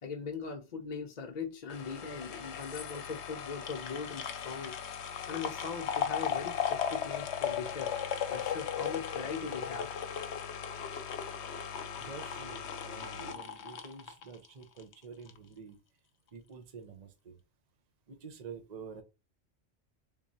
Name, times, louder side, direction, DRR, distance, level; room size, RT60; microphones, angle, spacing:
voice 1, 0.0-4.8 5.2-7.9 8.3-9.9 10.5-10.7, left 5 dB, 45° left, 0.6 m, -40 dB
sound 1, 1.7-14.9 15.3-15.4, left 8 dB, 75° left, 0.9 m, -37 dB
voice 2, 12.0-15.8 16.3-17.4 18.1-19.0, right 5 dB, 40° right, 0.8 m, -48 dB
3.6 x 3.0 x 2.6 m
omnidirectional pair, 1.2 m